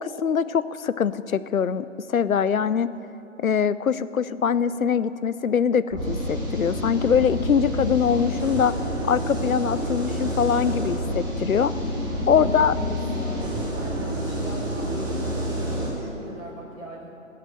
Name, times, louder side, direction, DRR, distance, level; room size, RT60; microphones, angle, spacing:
voice 1, 0.0-2.9 3.4-8.8 9.0-11.7 12.3-12.7, left 7 dB, 90° left, 15 dB, 0.6 m, -23 dB
sound 1, 5.9-15.9, equal, 10° right, 2.1 m, -28 dB
voice 2, 12.3-17.1, equal, 70° right, -8 dB, 3.4 m, -39 dB
17.0 x 6.7 x 8.9 m, 2.9 s
figure-of-eight pair, 140°, 40 cm